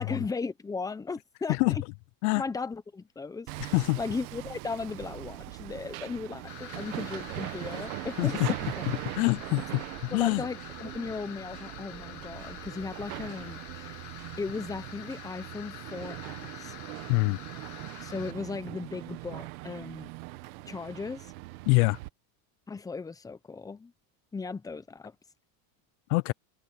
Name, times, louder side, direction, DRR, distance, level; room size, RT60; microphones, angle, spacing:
voice 1, 0.0-1.8 2.4-8.9 10.1-14.0 14.4-16.7 18.0-20.1 20.7-21.3 22.7-23.9 24.3-25.2, left 4 dB, 10° left, 0.9 m, -37 dB
Hammer, 3.5-22.1, right 21 dB, 75° right, 1.4 m, -41 dB
sound 1, 6.5-18.3, left 14 dB, 40° left, 2.3 m, -47 dB
voice 2, 8.2-8.5 9.1-9.8 10.1-10.4 17.1-17.4 21.7-22.0 26.1-26.3, left 28 dB, 80° left, 0.5 m, -24 dB
sound 2, 10.3-11.1 12.0-15.0 15.9-17.0, right 19 dB, 55° right, 6.4 m, -53 dB
cardioid pair, 150°, 42 cm